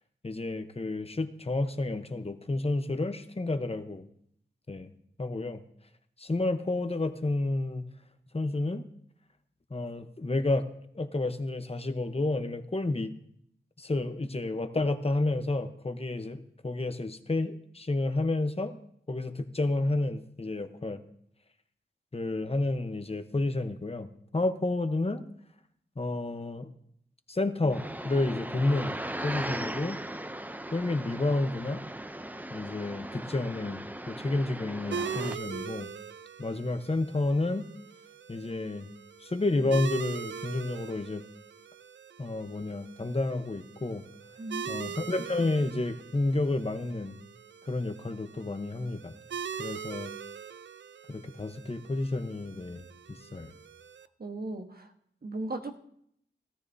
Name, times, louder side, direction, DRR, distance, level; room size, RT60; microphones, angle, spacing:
voice 1, 0.2-4.0 4.7-4.9 5.2-5.6 6.2-7.9 8.3-8.8 9.7-10.7 10.9-13.1 13.8-18.8 19.1-21.0 22.1-24.1 24.3-25.2 26.0-26.7 27.3-28.9 29.2-30.0 30.7-31.8 32.5-35.9 36.4-37.7 38.3-38.9 39.2-41.2 42.2-44.0 44.7-47.2 47.6-49.1 49.6-50.1 51.1-53.5, left 2 dB, 30° left, 8 dB, 1.0 m, -30 dB
sound 1, 27.7-35.3, right 1 dB, 10° right, 0.6 m, -38 dB
sound 2, 34.9-54.1, right 7 dB, 75° right, 0.4 m, -42 dB
voice 2, 44.4-45.0 49.5-49.8 54.2-54.9 55.2-55.8, right 2 dB, 55° right, 5 dB, 1.4 m, -38 dB
17.5 x 13.5 x 2.7 m, 0.70 s
wide cardioid pair, 70°, 19 cm